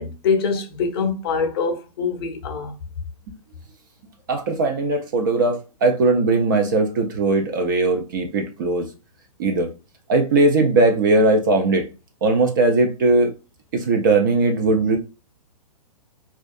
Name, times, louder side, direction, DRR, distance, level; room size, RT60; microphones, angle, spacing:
voice 1, 0.0-2.8, left 5 dB, 40° left, 0.5 m, -24 dB
voice 2, 4.3-8.9 9.4-9.7 10.1-11.9 12.2-13.3 13.7-15.0, right 3 dB, 30° right, 0.3 m, -19 dB
2.3 x 2.3 x 2.5 m
hypercardioid pair, 155°, 20 cm